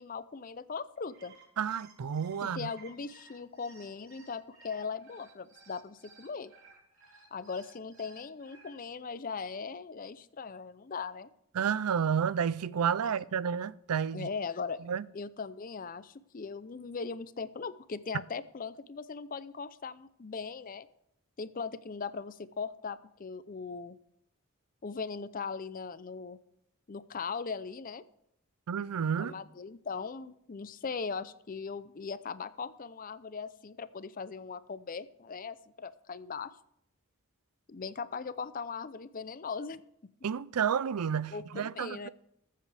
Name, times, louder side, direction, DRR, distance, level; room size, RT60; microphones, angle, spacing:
voice 1, 0.0-1.3 2.4-6.5 7.3-11.3 13.0-13.1 14.1-14.8 15.1-20.9 21.4-24.0 24.8-26.4 26.9-28.0 29.2-36.5 37.7-39.8 41.3-42.1, left 5 dB, 40° left, 0.5 m, -39 dB
sound 1, 1.0-8.7, right 4 dB, 60° right, 4.2 m, -57 dB
voice 2, 1.6-2.7 11.5-14.3 14.9-15.0 28.7-29.3 40.2-42.1, right 7 dB, 85° right, 0.4 m, -31 dB
21.0 x 7.6 x 3.4 m
head